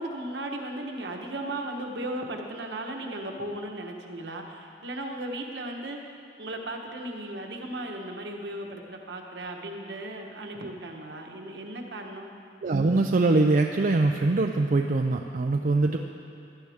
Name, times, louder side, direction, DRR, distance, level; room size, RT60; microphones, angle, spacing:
voice 1, 0.0-12.3 15.8-16.0, right 1 dB, 70° right, 2 dB, 1.2 m, -36 dB
voice 2, 12.6-16.0, right 2 dB, 50° right, 3 dB, 0.5 m, -23 dB
16.0 x 11.5 x 3.5 m, 2.5 s
head